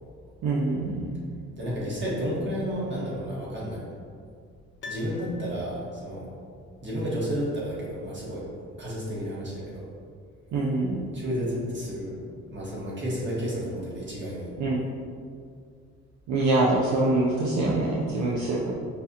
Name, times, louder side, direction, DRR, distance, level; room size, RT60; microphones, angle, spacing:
voice 1, 0.4-1.2 10.5-11.1 14.6-14.8 16.3-18.7, right 2 dB, 70° right, -5 dB, 0.6 m, -25 dB
voice 2, 1.6-3.8 4.8-6.3 6.8-8.4 8.8-9.8 11.1-12.2 12.5-14.5 18.4-18.5, equal, 40° right, -6 dB, 1.4 m, -31 dB
Piano, 4.8-6.1 6.3-6.4, left 4 dB, 40° left, 0.5 m, -43 dB
5.4 x 2.4 x 2.7 m, 2.2 s
cardioid pair, 90°, 30 cm